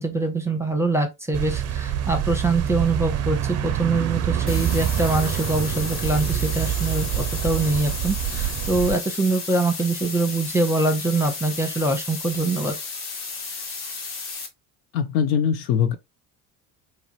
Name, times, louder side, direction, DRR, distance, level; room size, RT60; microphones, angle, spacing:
voice 1, 0.0-12.8, right 3 dB, 5° right, 0.8 m, -24 dB
sound 1, 1.3-9.0, right 10 dB, 35° right, 0.4 m, -26 dB
sound 2, 4.5-14.5, left 4 dB, 50° left, 1.3 m, -33 dB
voice 2, 14.9-16.0, left 8 dB, 80° left, 0.7 m, -21 dB
3.0 x 2.5 x 3.0 m
hypercardioid pair, 70°, 49 cm